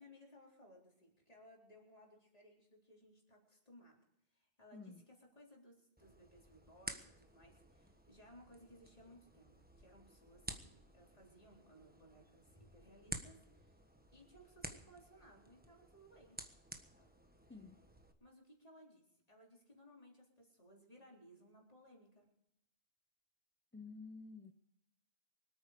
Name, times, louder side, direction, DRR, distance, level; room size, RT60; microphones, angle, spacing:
voice 1, 0.0-4.0 4.3-13.8 14.1-16.4 17.0-17.1 18.2-22.2, equal, 35° left, -2 dB, 4.2 m, -62 dB
voice 2, 4.7-5.0 17.5-17.8 23.7-24.5, left 4 dB, 15° left, 5 dB, 0.7 m, -51 dB
sound 1, 6.0-18.1, right 1 dB, 10° right, 1.2 m, -53 dB
25.0 x 9.1 x 5.1 m, 0.78 s
omnidirectional pair, 1.1 m